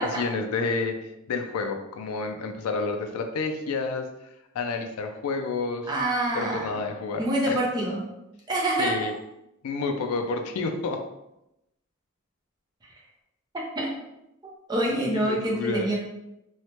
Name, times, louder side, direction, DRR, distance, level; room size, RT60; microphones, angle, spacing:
voice 1, 0.0-4.1 4.5-5.9 6.4-7.6 8.8-9.1 9.6-11.0 15.1-15.9, left 4 dB, 85° left, 5 dB, 0.4 m, -29 dB
voice 2, 5.9-6.8 7.2-8.1 8.5-9.1 13.7-13.9 14.7-16.0, right 1 dB, 20° right, -3 dB, 0.5 m, -26 dB
3.1 x 2.1 x 2.8 m, 0.86 s
head